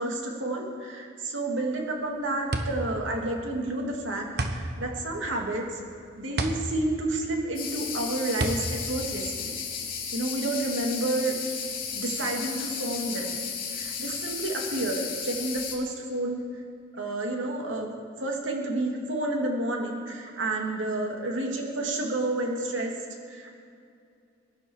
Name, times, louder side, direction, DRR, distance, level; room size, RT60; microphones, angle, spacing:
voice 1, 0.0-5.8 6.2-9.5 10.1-11.3 11.9-13.4 13.7-16.4 17.0-17.9 18.2-22.9 23.3-23.5, right 2 dB, 90° right, 0 dB, 3.0 m, -30 dB
sound 1, 1.7-10.0, right 2 dB, 60° right, 1.2 m, -33 dB
sound 2, 7.6-15.8, left 6 dB, 50° left, 2.6 m, -34 dB
21.5 x 12.0 x 4.9 m, 2.4 s
head